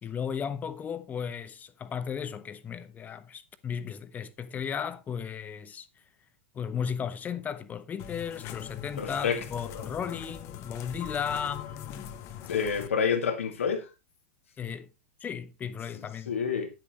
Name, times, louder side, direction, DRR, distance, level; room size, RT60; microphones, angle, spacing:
voice 1, 0.0-5.9 6.5-12.2 14.6-14.9 15.2-16.4, left 7 dB, 25° left, 1.2 m, -35 dB
sound 1, 8.0-12.9, left 10 dB, 45° left, 1.3 m, -42 dB
voice 2, 9.0-9.4 12.5-13.9 16.3-16.7, left 6 dB, 85° left, 2.3 m, -28 dB
10.0 x 10.0 x 3.1 m
hypercardioid pair, 115°, 7 cm